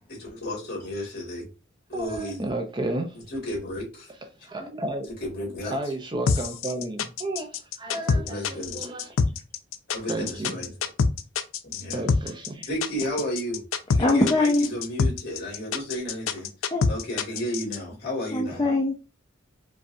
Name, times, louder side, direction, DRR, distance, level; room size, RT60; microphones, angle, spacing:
voice 1, 0.2-1.4 1.9-2.4 3.3-4.1 5.2-5.8 8.1-8.8 9.9-10.7 11.6-12.0 12.7-13.6 13.9-16.5 16.9-18.6, equal, 55° left, 2.2 m, -32 dB
voice 2, 1.9-3.2 4.4-5.1 5.7-9.2 10.1-10.7 11.9-12.7, right 1 dB, 25° right, 0.5 m, -32 dB
sound 1, 6.3-17.8, left 4 dB, 85° left, 0.4 m, -25 dB
voice 3, 14.0-14.7 16.7-16.9 18.3-18.9, left 2 dB, 20° left, 0.5 m, -22 dB
5.2 x 2.3 x 2.6 m
head